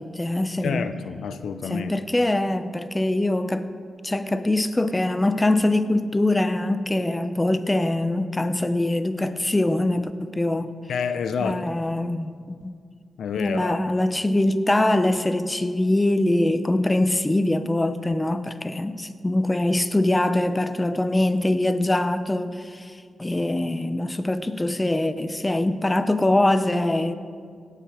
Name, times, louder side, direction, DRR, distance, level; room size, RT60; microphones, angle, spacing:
voice 1, 0.0-0.8 1.7-3.7 4.0-10.7 11.4-12.8 13.4-27.2, left 1 dB, 20° left, 11 dB, 0.7 m, -23 dB
voice 2, 0.6-1.9 10.9-11.8 13.2-13.8, left 6 dB, 80° left, 11 dB, 0.6 m, -28 dB
17.0 x 9.2 x 4.9 m, 2.1 s
cardioid pair, 70°, 0 cm